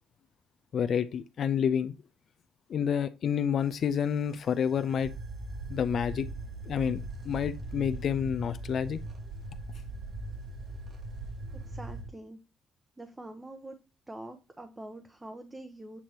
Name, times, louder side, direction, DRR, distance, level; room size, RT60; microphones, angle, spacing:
voice 1, 0.7-1.9 2.7-5.1 5.7-6.3 6.7-7.0 7.2-9.0, left 8 dB, 60° left, 0.5 m, -29 dB
sound 1, 3.6-12.1, right 2 dB, 45° right, 2.2 m, -40 dB
voice 2, 11.5-12.4 13.0-13.8 14.1-16.0, right 1 dB, 15° right, 0.9 m, -45 dB
8.3 x 3.0 x 4.4 m
cardioid pair, 90°, 0 cm